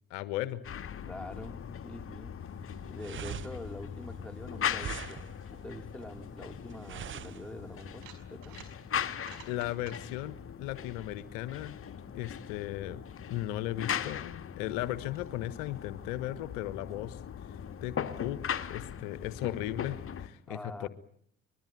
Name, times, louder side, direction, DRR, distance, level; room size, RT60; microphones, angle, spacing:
voice 1, 0.1-0.6 9.5-11.7 12.1-13.0 13.3-17.2 17.8-18.4 18.7-20.9, left 14 dB, 60° left, 15 dB, 1.3 m, -36 dB
sound 1, 0.6-20.3, left 8 dB, 35° left, 2.0 m, -39 dB
voice 2, 1.1-2.3 2.9-8.6 20.5-20.9, left 1 dB, 5° left, 6 dB, 2.9 m, -45 dB
sound 2, 2.4-7.9, right 9 dB, 35° right, 1.0 m, -44 dB
sound 3, 7.8-8.7 9.1-10.0, right 10 dB, 60° right, 5.7 m, -52 dB
24.5 x 21.5 x 9.3 m, 0.67 s
figure-of-eight pair, 55°, 36 cm